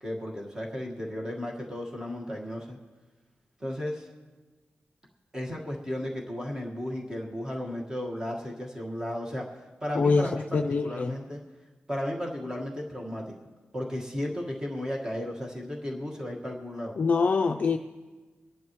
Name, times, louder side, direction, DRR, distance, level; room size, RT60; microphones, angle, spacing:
voice 1, 0.0-2.8 3.6-4.1 5.3-11.4 11.9-13.3 13.7-16.9, left 1 dB, 15° right, -1 dB, 1.6 m, -34 dB
voice 2, 9.9-11.1 17.0-17.8, left 4 dB, 40° left, 4 dB, 0.4 m, -24 dB
25.0 x 11.0 x 3.1 m, 1.3 s
wide cardioid pair, 175°, 4 cm